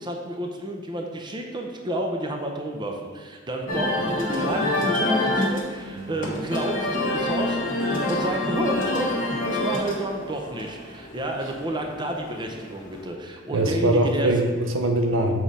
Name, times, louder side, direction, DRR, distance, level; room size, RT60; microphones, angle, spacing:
voice 1, 0.0-14.3, right 1 dB, 25° right, 2 dB, 0.6 m, -30 dB
sound 1, 3.7-13.1, left 1 dB, 45° left, 1.2 m, -27 dB
voice 2, 13.5-15.4, right 1 dB, 70° right, 4 dB, 0.7 m, -22 dB
7.2 x 3.8 x 4.1 m, 1.4 s
head